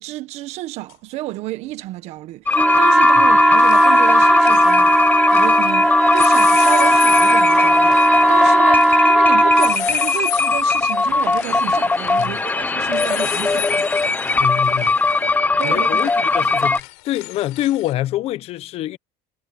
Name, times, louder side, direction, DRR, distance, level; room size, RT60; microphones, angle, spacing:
voice 1, 0.0-5.0 5.3-13.9 15.6-16.1, right 17 dB, 65° right, 1.6 m, -30 dB
sound 1, 0.9-1.0 2.7-3.0 3.3-5.7 6.1-17.9, left 33 dB, 80° left, 7.0 m, -33 dB
sound 2, 2.5-16.8, left 3 dB, 15° left, 1.0 m, -19 dB
sound 3, 2.5-9.8, right 1 dB, 5° right, 0.6 m, -15 dB
voice 2, 14.4-15.0 15.6-19.0, left 14 dB, 55° left, 1.2 m, -25 dB
supercardioid pair, 115°, 12 cm